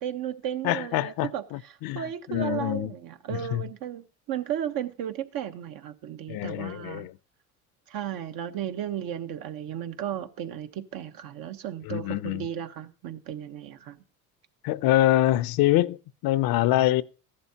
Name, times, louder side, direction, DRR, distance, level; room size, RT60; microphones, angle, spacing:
voice 1, 0.0-7.1 7.9-14.0, right 10 dB, 65° right, 1.1 m, -34 dB
voice 2, 0.6-2.9 3.3-3.6 6.3-7.1 11.8-12.5 14.6-16.0 16.2-17.0, left 15 dB, 65° left, 0.6 m, -25 dB
14.0 x 11.0 x 2.8 m
supercardioid pair, 85°, 38 cm